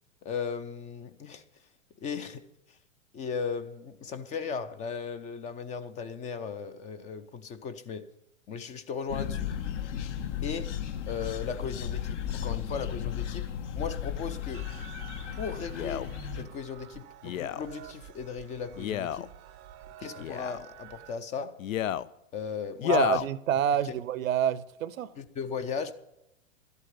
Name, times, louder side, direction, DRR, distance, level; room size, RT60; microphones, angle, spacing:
voice 1, 0.2-1.4 2.0-2.4 3.1-8.1 8.5-9.5 10.4-10.8 11.1-13.5 13.8-14.7 15.4-16.1 16.4-19.3 20.0-21.6 22.3-23.3 23.8-23.9 25.2-25.9, left 6 dB, 20° left, 0.5 m, -37 dB
sound 1, 9.1-16.5, left 9 dB, 60° left, 1.3 m, -35 dB
sound 2, 14.5-21.2, right 10 dB, 25° right, 0.6 m, -49 dB
Male speech man speaking, 15.7-16.1 17.2-17.7 18.7-19.3 20.2-20.6 21.6-22.1 22.8-23.3 24.0-24.1, left 11 dB, 75° left, 0.7 m, -30 dB
voice 2, 22.9-25.1, right 9 dB, 75° right, 0.8 m, -27 dB
12.5 x 8.3 x 8.9 m
hypercardioid pair, 120°, 41 cm